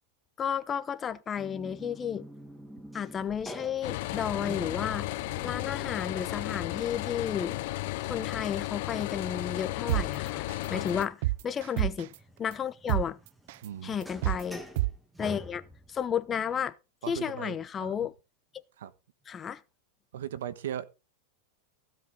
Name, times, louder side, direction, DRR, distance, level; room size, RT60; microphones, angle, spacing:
voice 1, 0.4-2.2 2.9-5.1 5.4-7.6 8.1-10.4 10.7-11.2 11.4-12.1 12.4-13.2 13.8-14.6 15.2-15.6 15.9-16.7 17.1-18.1 19.3-19.6, left 8 dB, 20° left, 0.8 m, -32 dB
sound 1, 1.4-7.7 9.9-16.1, equal, 5° right, 1.5 m, -47 dB
sound 2, 3.8-11.0, left 20 dB, 60° left, 0.5 m, -34 dB
sound 3, 9.9-10.0 10.5-10.7 11.0-12.1 12.5-12.6 12.9-13.0 13.5-13.7 14.0-14.4 14.8-14.9, right 18 dB, 65° right, 0.5 m, -27 dB
voice 2, 13.6-14.0 17.0-17.9 18.8-18.9 20.1-20.9, right 10 dB, 85° right, 1.2 m, -38 dB
15.5 x 8.0 x 3.9 m
supercardioid pair, 140°, 0 cm